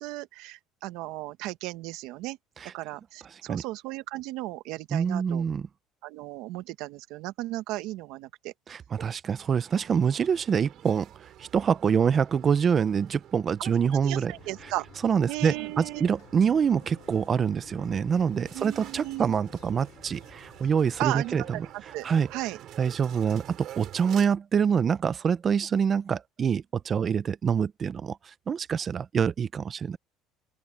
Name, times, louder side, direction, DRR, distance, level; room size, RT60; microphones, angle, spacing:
voice 1, 0.0-2.4 2.7-5.4 6.0-8.5 13.6-13.7 14.0-14.9 15.3-16.1 18.5-19.3 21.0-22.6, right 18 dB, 70° right, 1.1 m, -35 dB
voice 2, 4.9-5.7 8.7-11.1 11.4-14.3 15.0-21.6 22.0-22.3 22.8-28.2 28.5-30.0, right 7 dB, 30° right, 0.6 m, -25 dB
sound 1, 9.4-24.3, right 12 dB, 50° right, 4.4 m, -49 dB
sound 2, 14.3-21.7, left 15 dB, 60° left, 3.0 m, -53 dB
open air
cardioid pair, 155°, 0 cm